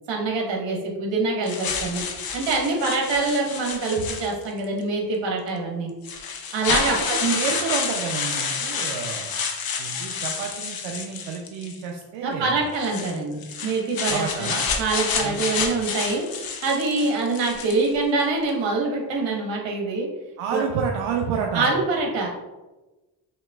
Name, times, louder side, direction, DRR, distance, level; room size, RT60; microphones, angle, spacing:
voice 1, 0.1-2.0 2.3-5.9 6.5-7.4 12.2-14.5 14.8-16.2 16.6-20.1 20.5-20.6 21.5-22.4, right 3 dB, 65° right, 0 dB, 1.3 m, -25 dB
sound 1, 1.5-4.6 5.5-5.6 6.0-11.8 12.7-17.9, left 5 dB, 50° left, 0.9 m, -29 dB
voice 2, 6.9-9.3 9.8-12.6 14.1-14.7 15.2-15.7 20.4-21.7, right 6 dB, 85° right, 1 dB, 0.6 m, -30 dB
5.7 x 2.9 x 2.3 m, 1.1 s
supercardioid pair, 60°, 47 cm